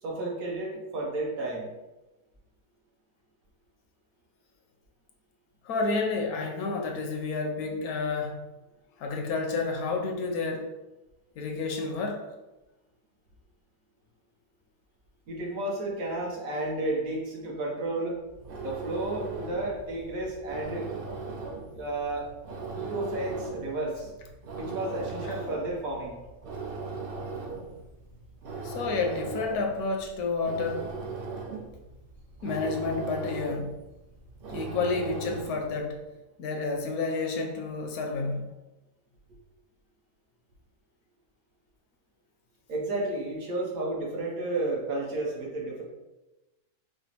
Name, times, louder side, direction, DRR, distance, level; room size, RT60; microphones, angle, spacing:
voice 1, 0.0-1.7 15.3-18.2 18.6-20.9 21.7-22.3 22.7-24.1 24.5-26.2 42.7-45.8, right 2 dB, 65° right, -2 dB, 1.2 m, -32 dB
voice 2, 5.6-8.4 9.0-10.7 11.4-12.2 28.6-30.9 32.4-33.8 34.5-36.0 36.4-38.5, left 3 dB, 75° left, 2 dB, 1.0 m, -30 dB
sound 1, 18.2-35.8, right 4 dB, 85° right, 0.4 m, -39 dB
4.9 x 2.0 x 2.8 m, 1.0 s
omnidirectional pair, 1.6 m